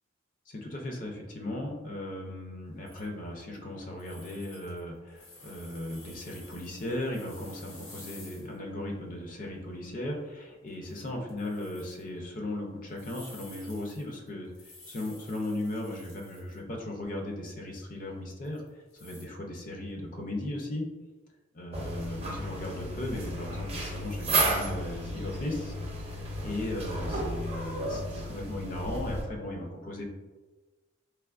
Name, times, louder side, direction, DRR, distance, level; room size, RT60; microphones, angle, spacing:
voice 1, 0.5-20.9 21.5-30.1, left 1 dB, 40° left, 1 dB, 0.5 m, -37 dB
sound 1, 2.9-3.7 4.0-8.6 8.9-9.0 9.5-9.7 10.0-10.3 10.7-12.1 12.9-16.6 17.0-17.1 18.4-19.3, left 2 dB, 85° left, 1.2 m, -52 dB
sound 2, 21.7-29.2, right 1 dB, 30° right, 0.6 m, -33 dB
3.3 x 3.2 x 2.4 m, 1.2 s
head